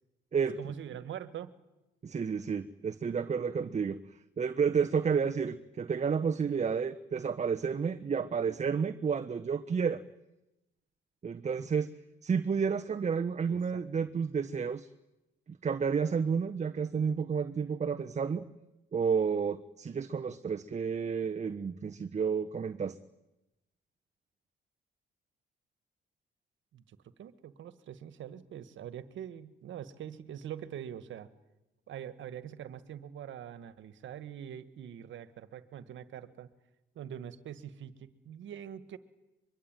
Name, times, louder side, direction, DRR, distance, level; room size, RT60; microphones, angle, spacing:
voice 1, 0.3-1.5 13.5-14.1 26.7-31.3 31.9-36.5 36.9-39.0, right 9 dB, 70° right, 13 dB, 1.7 m, -44 dB
voice 2, 2.0-4.0 4.4-10.0 11.2-11.9 12.2-14.9 15.6-18.4 18.9-23.0, right 6 dB, 35° right, 8 dB, 1.1 m, -31 dB
23.5 x 23.5 x 9.1 m, 0.97 s
cardioid pair, 90°, 20 cm